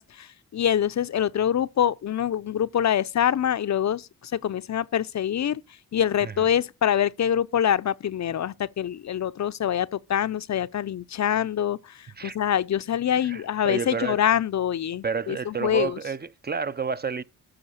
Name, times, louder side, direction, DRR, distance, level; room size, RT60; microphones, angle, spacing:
voice 1, 0.0-5.6 5.9-16.0, left 9 dB, 55° left, 0.6 m, -25 dB
voice 2, 13.2-14.2 15.0-17.2, right 5 dB, 30° right, 0.6 m, -30 dB
13.0 x 4.9 x 6.4 m
cardioid pair, 75°, 34 cm